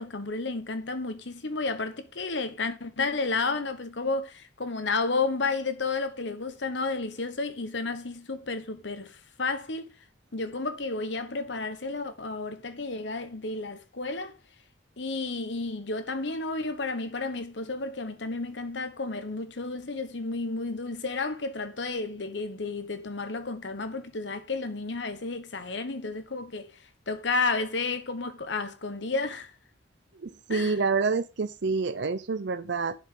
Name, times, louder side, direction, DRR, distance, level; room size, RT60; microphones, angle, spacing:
voice 1, 0.0-9.9 10.3-14.3 15.0-26.8 27.1-29.5 30.5-30.8, left 3 dB, 70° left, 1.2 m, -32 dB
voice 2, 30.2-33.0, right 4 dB, 65° right, 0.6 m, -28 dB
11.0 x 6.3 x 3.8 m
head